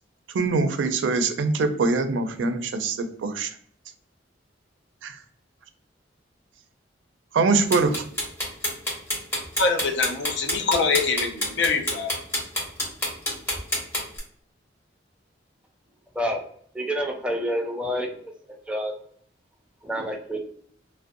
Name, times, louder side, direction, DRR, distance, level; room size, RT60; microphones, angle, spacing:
voice 1, 0.3-3.5 5.0-5.2 7.3-7.9, right 3 dB, 80° right, 8 dB, 0.4 m, -23 dB
sound 1, 7.7-14.2, equal, 15° left, 1.0 m, -27 dB
voice 2, 9.6-12.1, left 4 dB, 70° left, 4 dB, 0.5 m, -24 dB
voice 3, 16.7-18.1 18.7-18.9 19.8-20.4, equal, 5° right, 2 dB, 0.4 m, -27 dB
2.4 x 2.1 x 2.5 m, 0.62 s
head